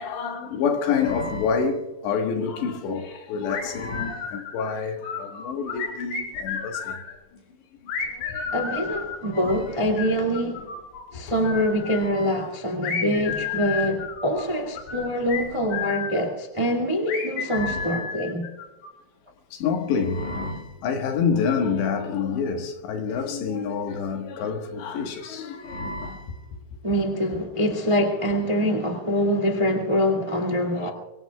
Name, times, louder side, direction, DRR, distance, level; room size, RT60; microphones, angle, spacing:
voice 1, 0.0-7.0 7.8-8.5 9.3-9.8 11.1-11.2 12.0-12.4 17.4-18.0 19.5-26.6, left 5 dB, 90° left, 3.8 m, -28 dB
sound 1, 3.5-4.7 5.0-7.1 7.9-11.0 11.3-12.1 12.8-16.2 17.1-18.9, left 6 dB, 60° left, 5.2 m, -32 dB
voice 2, 8.5-10.6 11.1-18.4 26.8-30.9, equal, 55° right, 0.3 m, -24 dB
24.0 x 24.0 x 2.4 m
omnidirectional pair, 4.9 m